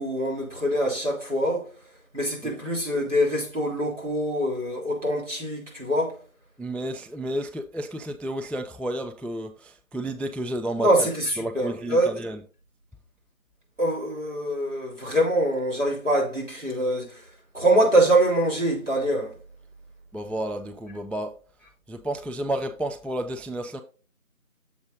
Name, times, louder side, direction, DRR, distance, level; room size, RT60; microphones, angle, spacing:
voice 1, 0.0-1.7 2.1-6.2 10.8-12.1 13.8-17.3 17.5-19.4, right 1 dB, 55° right, 3.2 m, -24 dB
voice 2, 6.6-11.1 11.4-12.4 20.1-21.3 21.9-23.8, right 1 dB, 5° left, 0.4 m, -31 dB
7.1 x 5.2 x 3.8 m
figure-of-eight pair, 180°, 43 cm